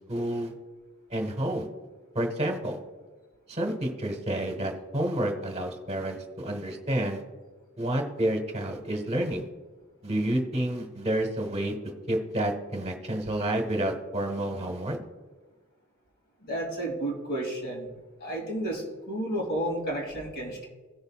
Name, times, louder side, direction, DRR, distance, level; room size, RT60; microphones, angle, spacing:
voice 1, 0.1-0.5 1.1-1.7 2.1-2.8 3.5-7.2 7.8-9.4 10.0-11.7 12.1-15.0, right 1 dB, 30° right, 3 dB, 1.4 m, -29 dB
voice 2, 16.4-17.9 18.2-20.7, right 1 dB, 50° left, -1 dB, 2.7 m, -32 dB
17.5 x 6.6 x 2.4 m, 1.4 s
head